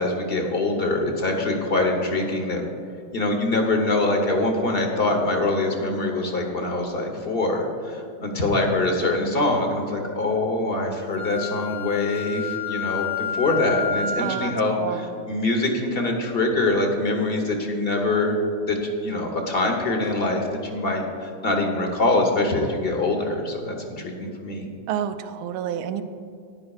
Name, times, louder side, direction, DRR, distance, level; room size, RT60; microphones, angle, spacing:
voice 1, 0.0-2.7 3.1-18.3 18.6-24.7, left 2 dB, 40° left, 3 dB, 0.9 m, -24 dB
Wind instrument woodwind instrument, 11.1-14.5, left 6 dB, 65° left, 0.5 m, -29 dB
voice 2, 14.2-14.5 14.8-15.0 24.9-26.0, right 10 dB, 85° right, 10 dB, 1.4 m, -29 dB
14.0 x 10.5 x 2.4 m, 2.4 s
omnidirectional pair, 2.3 m